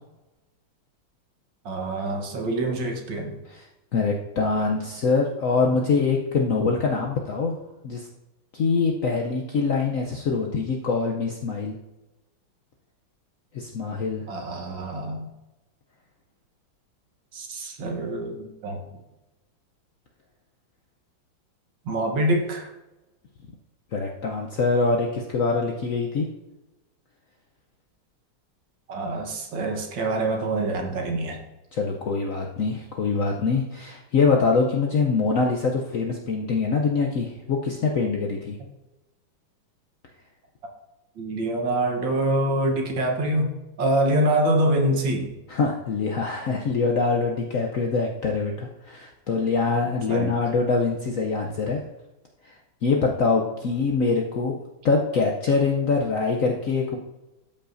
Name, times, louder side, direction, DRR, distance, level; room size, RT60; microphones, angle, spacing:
voice 1, 1.7-3.4 14.3-15.3 17.3-18.8 21.9-22.7 28.9-31.4 41.2-45.3 50.1-50.3, right 1 dB, 70° right, 2 dB, 1.8 m, -25 dB
voice 2, 3.9-7.6 7.8-8.1 8.5-11.8 13.5-14.2 23.9-26.3 31.7-38.6 45.5-51.8 52.4-52.5 52.8-54.6 54.8-57.0, left 4 dB, 65° left, 0 dB, 0.8 m, -24 dB
12.5 x 5.5 x 2.6 m, 1.0 s
omnidirectional pair, 2.1 m